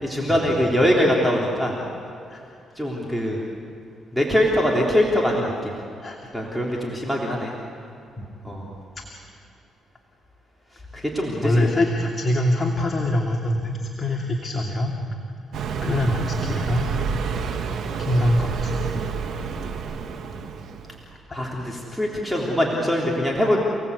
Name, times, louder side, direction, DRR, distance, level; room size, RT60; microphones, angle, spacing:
voice 1, 0.0-1.7 2.8-3.4 4.1-5.7 6.3-7.5 8.4-8.7 10.9-11.7 21.3-23.7, equal, 5° right, -2 dB, 3.6 m, -22 dB
voice 2, 11.4-14.9 15.8-16.9 18.0-18.8 21.3-21.4, left 1 dB, 25° left, 0 dB, 2.6 m, -24 dB
Car passing by, 15.5-21.0, right 6 dB, 65° right, 1.8 m, -29 dB
30.0 x 18.5 x 8.3 m, 2.5 s
cardioid pair, 90°, 0 cm